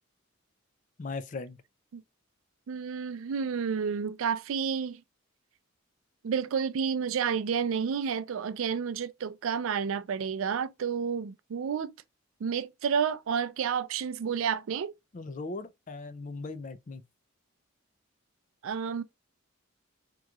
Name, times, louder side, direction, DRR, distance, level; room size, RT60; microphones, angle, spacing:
voice 1, 1.0-1.6 15.1-17.0, left 3 dB, 35° left, 0.4 m, -38 dB
voice 2, 2.7-5.0 6.2-11.9 12.4-14.9 18.6-19.0, right 6 dB, 80° right, 0.4 m, -30 dB
3.7 x 3.0 x 2.3 m
head